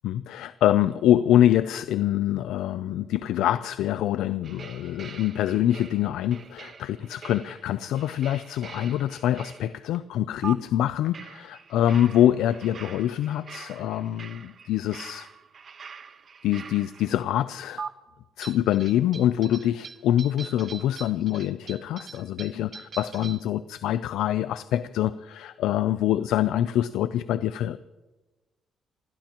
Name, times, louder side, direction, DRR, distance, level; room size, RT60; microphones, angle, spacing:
voice 1, 0.0-15.3 16.4-17.8 18.4-27.8, left 12 dB, 90° left, 14 dB, 0.4 m, -25 dB
sound 1, 4.4-10.0 10.4-10.5 11.1-17.2 17.8-17.9 18.4-23.5, right 5 dB, 45° right, 1.1 m, -43 dB
28.0 x 16.5 x 3.0 m, 1.2 s
cardioid pair, 90°, 0 cm